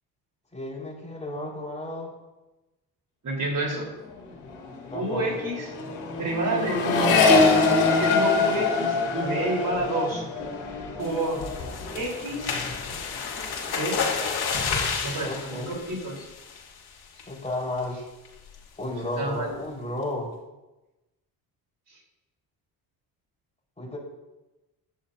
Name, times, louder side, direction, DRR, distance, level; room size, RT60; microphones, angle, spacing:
voice 1, 0.5-2.1 4.9-5.4 15.2-15.8 17.3-18.0 18.8-20.3 23.8-24.0, left 1 dB, 15° left, -2 dB, 4.4 m, -33 dB
voice 2, 3.2-3.9 4.9-5.7 6.2-7.5 7.9-10.2 11.0-11.5 11.9-12.6 13.7-14.4 15.0-16.2 19.2-19.5 21.9-22.0, right 1 dB, 50° right, -1 dB, 3.8 m, -29 dB
Accelerating revving vroom, 4.0-4.3 4.5-12.1 12.4-13.0, left 3 dB, 85° left, 2.7 m, -24 dB
sound 1, 11.0-16.8 17.2-17.5 17.8-17.9 18.3-18.6, left 5 dB, 60° left, 2.4 m, -31 dB
14.5 x 11.0 x 2.7 m, 1.0 s
supercardioid pair, 70°, 42 cm